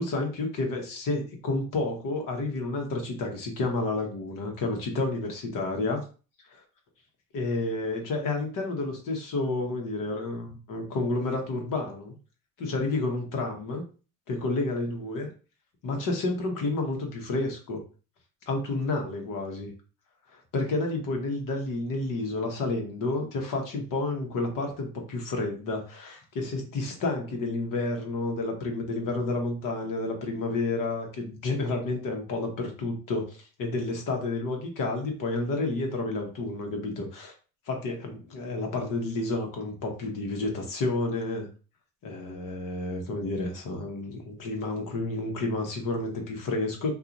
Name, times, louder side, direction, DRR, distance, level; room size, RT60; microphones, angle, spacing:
voice 1, 0.0-6.0 7.3-12.1 12.6-13.8 14.3-15.3 15.8-17.8 18.5-19.7 20.3-37.3 37.7-41.5 42.0-46.9, left 2 dB, 55° left, 3 dB, 1.0 m, -30 dB
2.8 x 2.4 x 2.5 m, 0.36 s
supercardioid pair, 80°, 39 cm